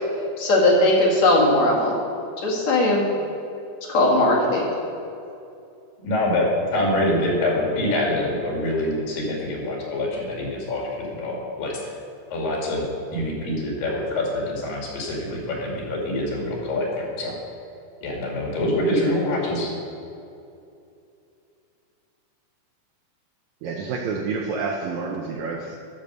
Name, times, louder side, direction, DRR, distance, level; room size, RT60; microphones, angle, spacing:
voice 1, 0.4-1.9 2.4-3.0 3.9-4.7, left 1 dB, 55° left, -4 dB, 3.0 m, -18 dB
voice 2, 6.0-11.9 12.3-12.8 13.1-17.4 18.0-19.7, left 1 dB, 80° left, -2 dB, 3.8 m, -25 dB
voice 3, 23.6-25.8, right 4 dB, 75° right, 1 dB, 1.8 m, -28 dB
12.0 x 5.5 x 6.6 m, 2.6 s
omnidirectional pair, 4.0 m